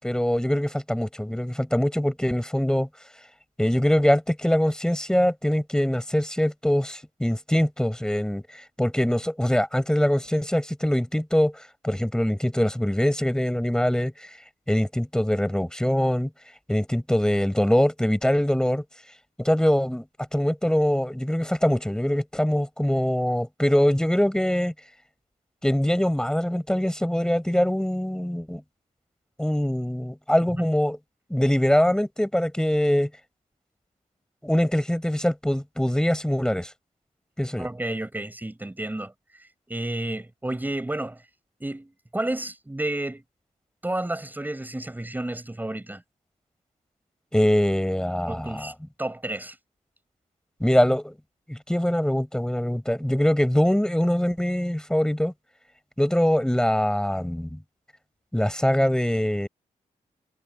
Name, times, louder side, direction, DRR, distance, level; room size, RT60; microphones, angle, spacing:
voice 1, 0.0-2.9 3.6-14.3 14.7-16.3 16.7-18.8 19.4-20.1 20.3-24.7 25.6-28.6 29.4-31.0 31.3-33.1 34.4-36.7 37.4-37.7 47.3-48.7 50.6-51.2 51.5-55.3 56.0-57.6 58.3-59.5, equal, 5° left, 6.3 m, -23 dB
voice 2, 37.6-41.2 41.6-43.2 43.8-46.0 48.3-48.7 49.0-49.6, right 1 dB, 15° right, 4.8 m, -31 dB
cardioid pair, 95°, 14 cm